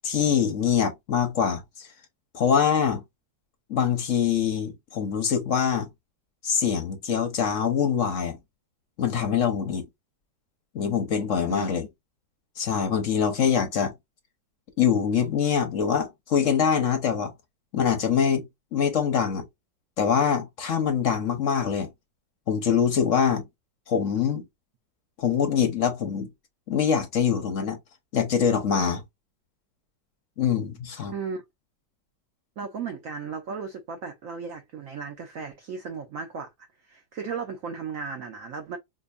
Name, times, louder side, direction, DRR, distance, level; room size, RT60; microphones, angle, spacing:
voice 1, 0.0-1.9 2.3-3.0 3.7-5.9 6.4-8.4 9.0-9.8 10.7-11.9 12.6-13.9 14.8-17.3 17.7-18.4 18.7-19.4 20.0-21.9 22.5-23.4 23.9-24.4 25.2-26.3 26.7-27.8 28.1-29.0 30.4-31.1, left 7 dB, 55° left, 0.9 m, -24 dB
voice 2, 31.1-31.4 32.6-36.5 36.8-38.8, right 5 dB, 65° right, 0.8 m, -35 dB
5.1 x 2.2 x 2.4 m
omnidirectional pair, 2.1 m